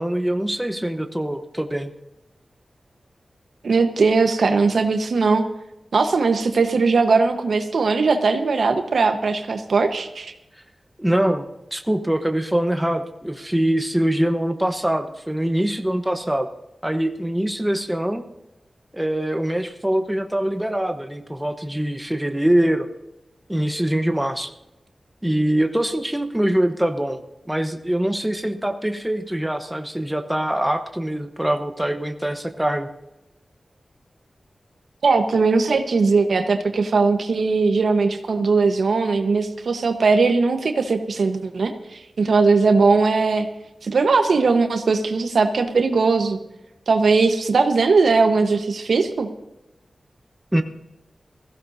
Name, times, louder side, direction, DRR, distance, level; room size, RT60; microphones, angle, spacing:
voice 1, 0.0-1.9 11.0-16.5 16.8-18.2 18.9-22.9 23.5-24.5 25.2-27.2 27.5-32.9 50.5-50.6, right 1 dB, 10° right, 7 dB, 1.1 m, -23 dB
voice 2, 3.6-5.4 5.9-10.3 35.0-43.5 43.8-46.4 46.9-49.3, right 4 dB, 85° right, 6 dB, 1.2 m, -19 dB
20.5 x 15.5 x 2.8 m, 0.93 s
wide cardioid pair, 75°, 0 cm